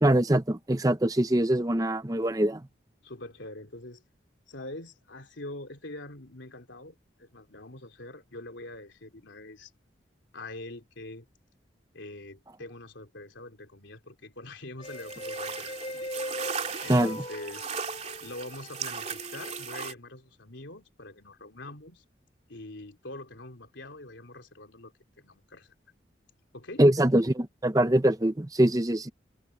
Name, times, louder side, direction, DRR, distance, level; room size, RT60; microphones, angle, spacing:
voice 1, 0.0-2.6 16.9-17.2 26.8-29.1, right 1 dB, 20° right, 0.8 m, -23 dB
voice 2, 3.0-4.0 4.5-9.7 10.3-11.3 11.9-17.7 18.2-22.0 22.5-25.7 26.5-26.8, left 2 dB, 85° left, 3.4 m, -44 dB
sound 1, 14.8-19.9, left 1 dB, 30° left, 4.7 m, -40 dB
sound 2, 14.8-19.9, right 6 dB, 35° right, 3.1 m, -37 dB
head